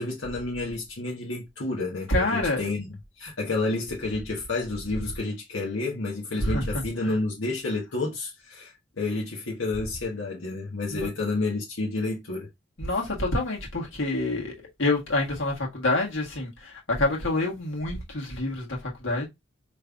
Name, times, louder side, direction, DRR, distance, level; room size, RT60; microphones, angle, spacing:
voice 1, 0.0-12.5, left 2 dB, 90° left, 1.2 m, -30 dB
voice 2, 2.1-2.6 6.4-6.6 7.0-7.1 10.9-11.1 12.8-14.5 14.8-19.3, left 2 dB, 70° left, 1.6 m, -27 dB
5.2 x 3.2 x 2.3 m
head